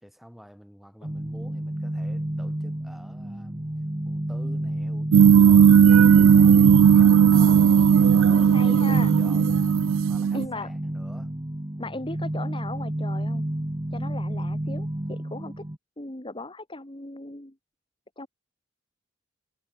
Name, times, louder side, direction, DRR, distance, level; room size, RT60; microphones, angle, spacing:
voice 1, 0.0-3.7 4.1-7.4 8.6-11.3, equal, ahead, 4.0 m, -49 dB
sound 1, 1.0-15.8, right 1 dB, 20° right, 1.1 m, -31 dB
sound 2, 5.1-10.5, right 7 dB, 65° right, 0.3 m, -16 dB
voice 2, 7.3-8.0 8.3-9.1 10.3-10.7 11.8-13.4 13.9-15.6 16.0-17.5 18.2-18.3, left 2 dB, 25° left, 2.2 m, -37 dB
head